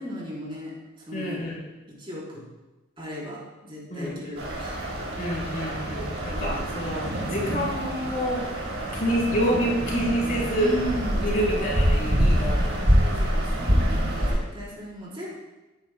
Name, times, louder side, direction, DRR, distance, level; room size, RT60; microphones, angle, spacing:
voice 1, 0.0-1.4 1.9-2.4 3.0-4.8 10.5-11.3 12.9-15.3, equal, 25° right, -6 dB, 4.1 m, -36 dB
voice 2, 1.1-1.6 3.9-4.1 5.2-8.6 8.9-10.7 11.2-13.1, equal, 45° left, -4 dB, 3.7 m, -28 dB
sound 1, 4.4-14.3, equal, 65° right, 3.9 m, -26 dB
16.5 x 10.5 x 2.2 m, 1.1 s
head